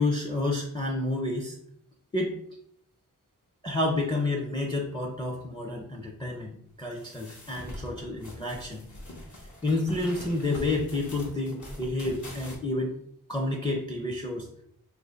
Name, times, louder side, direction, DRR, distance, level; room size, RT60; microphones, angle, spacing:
voice 1, 0.0-1.6 2.1-2.4 3.6-8.9 9.6-12.9 13.3-14.5, left 2 dB, 15° left, 1 dB, 0.5 m, -29 dB
sound 1, 6.9-12.6, left 1 dB, 55° left, 1.0 m, -43 dB
2.6 x 2.6 x 4.2 m, 0.67 s
wide cardioid pair, 70°, 35 cm